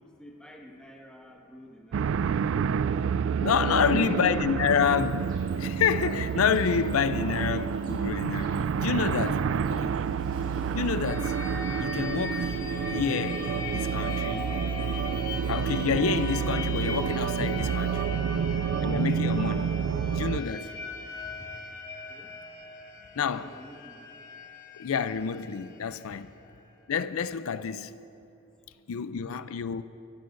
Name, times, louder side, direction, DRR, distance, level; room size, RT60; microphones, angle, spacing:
voice 1, 0.0-2.7 21.3-21.5 22.1-22.4 23.3-24.1, equal, 5° left, 1.4 m, -50 dB
sound 1, 1.9-20.4, right 7 dB, 65° right, 0.3 m, -29 dB
voice 2, 3.4-9.9 10.7-11.4 11.8-12.6 12.8-14.5 15.5-18.1 18.8-19.8 20.1-20.7 23.2-23.5 24.8-26.3 26.9-28.0 28.9-29.8, left 7 dB, 90° left, 0.5 m, -28 dB
Cricket, 4.6-18.0, right 1 dB, 25° right, 3.8 m, -57 dB
sound 2, 11.0-26.7, left 3 dB, 40° left, 1.4 m, -39 dB
24.0 x 15.5 x 2.6 m
head